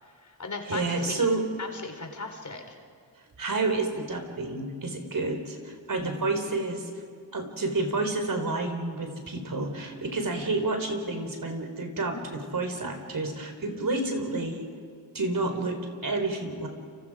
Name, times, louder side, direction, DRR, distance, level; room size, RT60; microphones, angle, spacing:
voice 1, 0.0-1.3 1.6-2.8, left 3 dB, 45° left, 5 dB, 4.0 m, -37 dB
voice 2, 0.7-1.4 3.4-6.9 7.3-14.7 15.1-16.7, right 2 dB, 50° right, 5 dB, 4.3 m, -29 dB
30.0 x 26.5 x 5.0 m, 2.2 s
cardioid pair, 70°, 41 cm